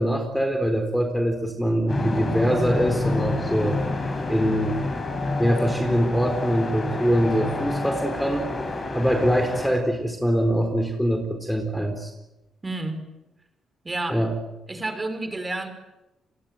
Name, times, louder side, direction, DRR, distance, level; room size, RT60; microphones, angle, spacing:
voice 1, 0.0-3.8 4.3-4.8 5.4-8.5 8.9-12.1 14.1-14.3, equal, ahead, 5 dB, 4.1 m, -23 dB
sound 1, 1.9-9.7, left 2 dB, 30° left, 7.5 m, -28 dB
voice 2, 12.6-13.0 13.8-14.2 14.7-15.7, right 2 dB, 20° right, 8 dB, 5.4 m, -30 dB
28.0 x 22.0 x 9.2 m, 0.99 s
cardioid pair, 90°, 0 cm